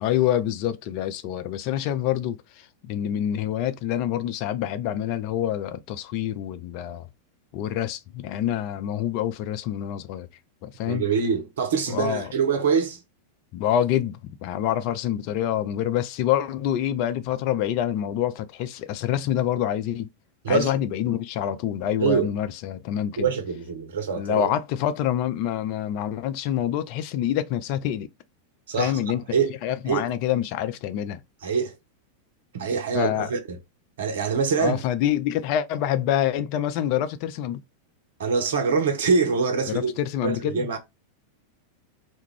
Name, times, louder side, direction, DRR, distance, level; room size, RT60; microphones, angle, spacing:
voice 1, 0.0-7.1 7.5-10.3 10.6-11.0 11.9-12.3 13.5-20.1 20.5-23.3 24.2-28.1 28.8-29.2 29.6-31.2 32.9-33.3 34.6-37.6 39.7-40.7, left 11 dB, 45° left, 0.3 m, -26 dB
voice 2, 10.9-13.0 20.4-20.7 22.0-22.3 23.2-24.5 28.7-29.0 29.3-29.5 29.9-30.1 31.4-31.7 32.5-33.6 34.0-34.9 38.2-39.9 40.2-40.8, right 5 dB, 60° right, 0.7 m, -24 dB
2.4 x 2.2 x 3.0 m
figure-of-eight pair, 90°, 0 cm